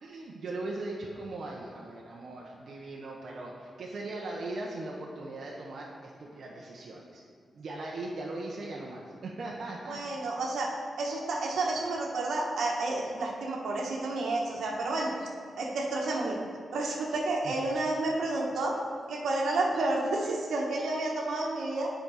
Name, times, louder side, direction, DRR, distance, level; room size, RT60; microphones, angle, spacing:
voice 1, 0.0-7.2 7.5-10.0 17.4-17.5, right 2 dB, 65° right, -3 dB, 0.9 m, -39 dB
voice 2, 9.9-10.7 11.0-15.1 15.6-16.4 16.7-18.8 19.1-21.9, right 2 dB, 85° right, -1 dB, 1.3 m, -30 dB
8.9 x 5.2 x 4.9 m, 2.2 s
cardioid pair, 105°, 0 cm